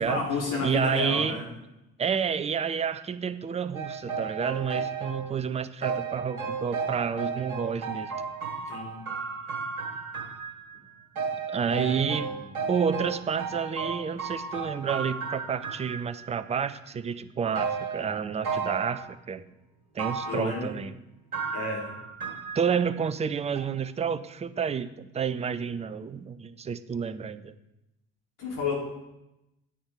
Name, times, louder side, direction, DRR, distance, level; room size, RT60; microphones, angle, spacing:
voice 1, 0.0-1.4 8.7-8.9 11.7-12.0 12.3-12.5 20.3-20.7 21.5-21.9 28.4-28.8, left 4 dB, 45° left, -4 dB, 3.9 m, -31 dB
voice 2, 0.6-1.4 2.0-8.1 11.5-12.3 12.7-19.4 19.9-21.0 22.5-27.5, right 7 dB, 15° right, 13 dB, 0.5 m, -30 dB
sound 1, 3.7-5.3 5.8-10.8 11.2-16.3 17.6-19.0 20.0-20.5 21.3-23.0 23.6-23.7, right 5 dB, 80° right, 1.6 m, -33 dB
10.0 x 8.7 x 3.8 m, 0.94 s
figure-of-eight pair, 50°, 42 cm